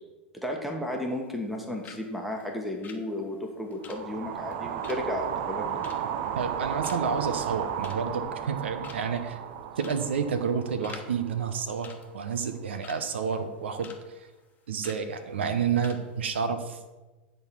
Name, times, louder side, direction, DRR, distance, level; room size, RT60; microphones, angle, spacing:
voice 1, 0.4-5.9, left 1 dB, ahead, 1 dB, 1.3 m, -33 dB
sound 1, 1.0-1.6 1.8-2.1 2.3-6.6 6.8-7.2 7.6-8.2 8.5-8.6 8.8-9.2 9.8-10.1 10.3-11.1 11.3-11.5 11.8-13.0 13.4-14.0 14.3-14.5 14.8-15.0 15.5-15.6 15.8-16.0 16.3-16.5, left 6 dB, 25° left, 1.2 m, -48 dB
sound 2, 3.8-12.1, right 9 dB, 55° right, 0.6 m, -34 dB
voice 2, 6.4-9.4 9.8-13.9 14.7-16.8, right 6 dB, 80° right, 10 dB, 0.9 m, -30 dB
9.3 x 3.9 x 5.9 m, 1.2 s
hypercardioid pair, 100°, 6 cm